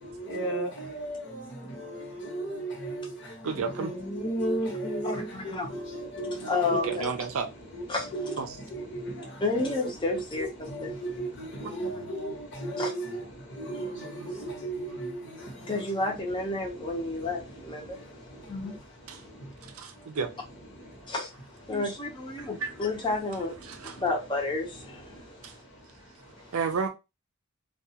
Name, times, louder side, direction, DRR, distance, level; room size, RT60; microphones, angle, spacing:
voice 1, 0.0-7.0 7.7-16.2 16.6-19.7 20.7-21.1 21.7-21.8 22.3-22.7 23.6-24.0 25.1-26.5, right 1 dB, 50° left, 1.0 m, -36 dB
voice 2, 3.4-3.9 6.7-7.5 8.4-8.6 13.8-13.9 19.1-19.2 20.2-20.3 22.4-22.7 23.6-24.0 25.4-25.5 26.5-26.9, right 5 dB, 65° right, 0.4 m, -31 dB
voice 3, 5.0-5.7 6.4-7.1 7.9-8.1 9.4-10.9 11.8-12.0 12.8-12.9 15.7-18.0 18.5-18.8 21.1-21.3 21.7-23.5 23.9-25.2, left 3 dB, 20° left, 0.6 m, -31 dB
2.3 x 2.3 x 2.7 m
head